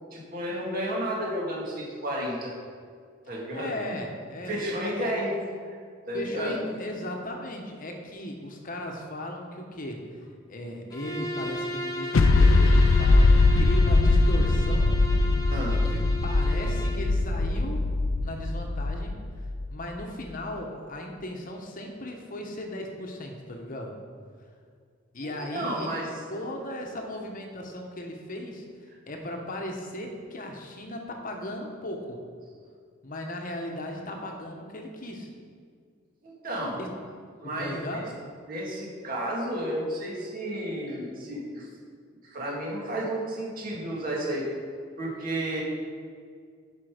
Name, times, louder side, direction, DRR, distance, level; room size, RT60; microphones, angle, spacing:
voice 1, 0.1-2.5 3.3-3.7 4.5-5.3 5.7-5.8 6.1-6.6 15.5-16.0 25.2-26.1 36.2-36.8 37.4-38.1 38.5-41.7 42.2-44.5 45.0-45.6, right 1 dB, 45° right, -3 dB, 2.2 m, -32 dB
voice 2, 3.5-5.1 6.1-10.1 10.5-15.0 15.7-17.8 18.2-19.1 19.7-23.9 25.1-26.0 26.3-32.2 33.0-35.3 36.8-36.9 37.2-38.0, left 1 dB, 45° left, 2 dB, 1.0 m, -37 dB
Bowed string instrument, 10.9-17.1, equal, 20° left, 0.8 m, -35 dB
sound 1, 12.1-19.7, left 2 dB, 70° left, 0.5 m, -21 dB
10.5 x 5.6 x 5.0 m, 2.1 s
head